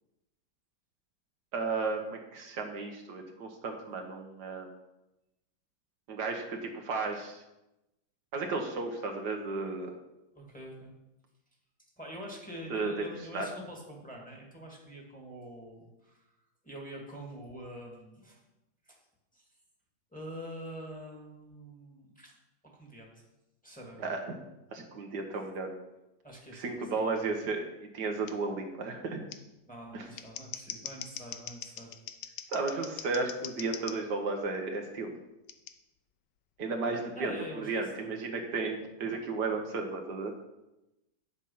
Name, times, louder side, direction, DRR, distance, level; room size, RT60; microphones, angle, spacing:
voice 1, 1.5-4.7 6.1-7.4 8.3-9.9 12.7-13.1 13.3-13.5 24.0-24.2 24.7-25.7 26.5-27.6 27.9-29.2 29.9-30.0 32.5-35.1 36.6-40.3, right 3 dB, 70° right, 3 dB, 1.7 m, -34 dB
voice 2, 10.3-10.9 12.0-16.3 16.6-18.4 18.9-19.0 19.3-19.5 20.1-22.3 22.8-23.2 23.6-24.0 26.2-27.3 29.7-31.9 37.1-38.1, equal, 5° left, -1 dB, 2.0 m, -45 dB
Scissors, 28.3-28.4 29.3-29.4 30.0-34.0 35.5-35.7, left 10 dB, 80° left, 1.3 m, -42 dB
8.9 x 7.5 x 5.6 m, 0.93 s
omnidirectional pair, 1.9 m